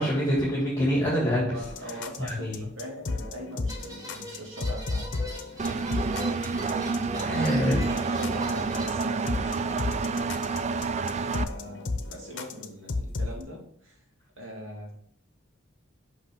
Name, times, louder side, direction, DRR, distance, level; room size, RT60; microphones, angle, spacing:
voice 1, 0.0-1.6 2.2-2.6 7.2-7.8, equal, 15° left, -6 dB, 1.8 m, -25 dB
voice 2, 1.3-5.1 6.9-7.7 8.1-10.0 11.3-14.0 14.4-14.9, equal, 80° right, -1 dB, 2.0 m, -41 dB
sound 1, 1.6-13.4, left 3 dB, 65° left, 0.7 m, -34 dB
sound 2, 3.7-8.9, left 1 dB, 20° right, 1.5 m, -42 dB
Engine, 5.6-11.4, right 4 dB, 35° right, 0.3 m, -29 dB
5.8 x 5.5 x 3.5 m, 0.65 s
head